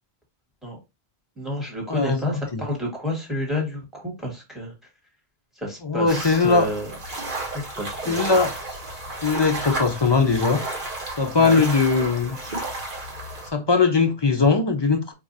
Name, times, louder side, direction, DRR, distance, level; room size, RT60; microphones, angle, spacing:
voice 1, 1.4-4.7 5.5-6.9 7.5-8.4 11.4-11.6, left 1 dB, ahead, 1.5 m, -30 dB
voice 2, 1.9-2.6 5.8-6.7 8.1-8.5 9.2-10.6 11.2-12.4 13.5-15.1, left 4 dB, 40° left, 0.4 m, -20 dB
sound 1, 6.1-13.5, right 2 dB, 50° right, 1.3 m, -32 dB
4.8 x 2.4 x 2.5 m
omnidirectional pair, 1.1 m